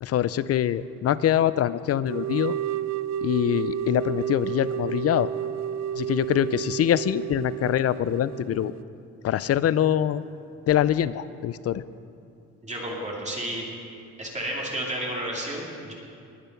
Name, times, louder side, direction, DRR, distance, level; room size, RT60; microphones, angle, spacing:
voice 1, 0.0-2.6 3.2-5.3 5.9-8.7 9.2-10.2 10.7-11.8, left 11 dB, 55° left, 17 dB, 0.5 m, -24 dB
sound 1, 2.1-8.8, right 10 dB, 65° right, 0.5 m, -31 dB
voice 2, 12.6-13.7 14.2-15.9, right 1 dB, 25° right, -3 dB, 2.5 m, -31 dB
20.0 x 6.8 x 5.8 m, 2.4 s
cardioid pair, 90°, 30 cm